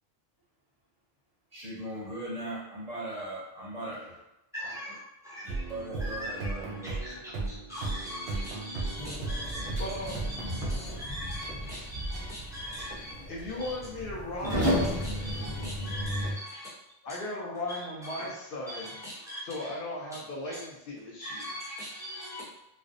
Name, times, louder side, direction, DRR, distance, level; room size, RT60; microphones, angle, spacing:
voice 1, 1.5-4.2 4.6-4.7 5.4-7.0, right 1 dB, 45° right, -7 dB, 0.6 m, -39 dB
voice 2, 4.5-5.0 5.2-5.7 6.0-13.1 13.6-13.7 14.6-16.7 17.1-17.2 17.7-17.8 18.1-18.2 18.7-19.7 20.5-20.6 21.2-22.4, equal, 5° right, -8 dB, 0.6 m, -41 dB
sound 1, 5.5-11.0, right 3 dB, 85° right, 0.8 m, -36 dB
sound 2, 9.0-16.3, equal, 20° left, 1.0 m, -34 dB
voice 3, 9.8-10.2 13.3-15.0 17.0-19.0 19.4-21.5, left 1 dB, 70° left, -3 dB, 0.8 m, -37 dB
2.5 x 2.0 x 2.4 m, 0.90 s
omnidirectional pair, 1.0 m